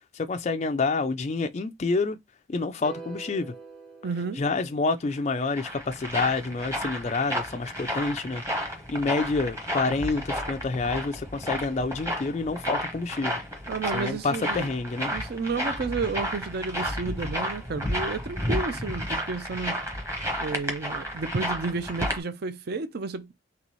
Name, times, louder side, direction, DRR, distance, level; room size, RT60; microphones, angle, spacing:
voice 1, 0.1-2.2 2.5-3.5 4.4-8.4 8.9-13.4 13.9-15.1, left 3 dB, 35° left, 0.3 m, -28 dB
sound 1, 2.8-5.2, right 4 dB, 5° left, 0.7 m, -44 dB
voice 2, 4.0-4.4 13.7-14.7 15.1-19.8 20.4-23.3, right 4 dB, 50° right, 0.5 m, -31 dB
sound 2, 5.2-22.2, equal, 15° right, 1.0 m, -32 dB
4.0 x 3.3 x 3.0 m
head